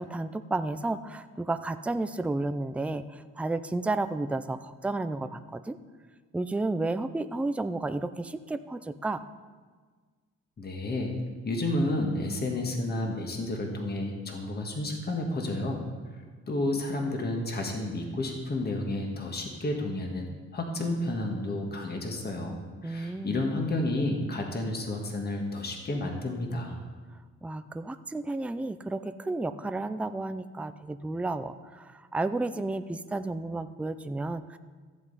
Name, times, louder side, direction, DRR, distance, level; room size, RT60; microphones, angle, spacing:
voice 1, 0.0-5.8 6.3-9.2 22.8-23.4 27.4-34.6, right 2 dB, 5° right, 10 dB, 0.4 m, -32 dB
voice 2, 10.6-11.1 11.4-15.9 16.1-20.3 20.5-26.7, left 2 dB, 35° left, 2 dB, 1.6 m, -31 dB
14.5 x 7.6 x 4.1 m, 1.5 s
cardioid pair, 90°, 30 cm